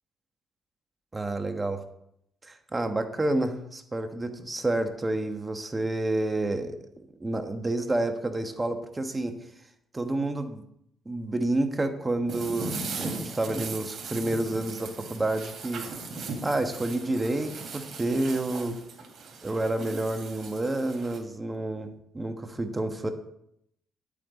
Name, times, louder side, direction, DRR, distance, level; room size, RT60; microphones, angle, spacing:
voice 1, 1.1-1.8 2.4-9.3 9.9-10.6 11.0-15.8 16.4-18.8 19.4-23.1, right 2 dB, 20° right, 6 dB, 1.3 m, -29 dB
sound 1, 12.3-21.2, right 3 dB, 55° right, 3.0 m, -38 dB
11.0 x 8.6 x 4.1 m, 0.75 s
cardioid pair, 90°, 0 cm